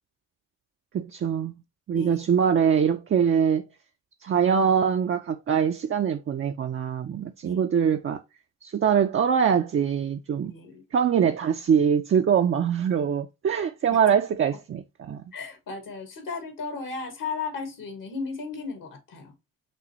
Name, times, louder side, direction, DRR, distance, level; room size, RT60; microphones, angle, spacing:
voice 1, 0.9-1.5 1.9-3.7 4.2-8.2 8.6-10.5 10.9-15.2, right 7 dB, 40° right, 0.5 m, -23 dB
voice 2, 10.4-10.8 13.9-14.0 15.3-19.3, left 4 dB, 65° left, 1.6 m, -35 dB
6.0 x 2.7 x 3.0 m
supercardioid pair, 65°, 35 cm